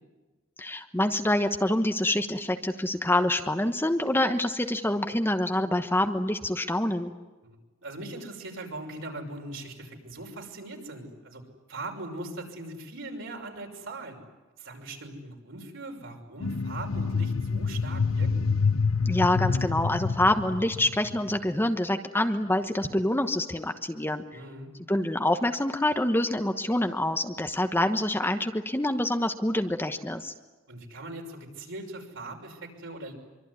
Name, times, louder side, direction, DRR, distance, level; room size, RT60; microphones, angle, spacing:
voice 1, 0.6-7.1 19.0-24.2 24.9-30.3, left 1 dB, 10° left, 7 dB, 1.1 m, -26 dB
voice 2, 7.8-11.4 11.7-14.2 14.6-18.4 24.3-24.7 30.7-33.1, right 2 dB, 65° right, 2 dB, 6.1 m, -40 dB
sound 1, 16.4-21.5, left 5 dB, 70° left, 0.9 m, -27 dB
25.0 x 24.5 x 9.8 m, 1.2 s
head